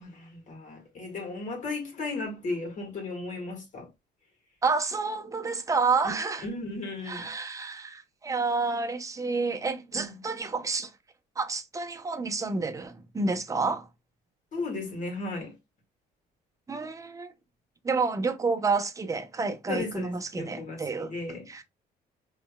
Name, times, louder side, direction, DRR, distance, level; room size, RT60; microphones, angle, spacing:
voice 1, 0.0-3.9 6.0-6.2 6.4-7.3 9.9-10.2 14.5-15.6 19.7-21.5, left 3 dB, 45° left, 2.0 m, -35 dB
voice 2, 4.6-6.5 7.1-10.9 11.4-13.9 16.7-17.3 17.8-21.1 21.5-21.6, right 4 dB, 20° right, 0.7 m, -29 dB
5.1 x 3.2 x 2.3 m
cardioid pair, 110°, 17 cm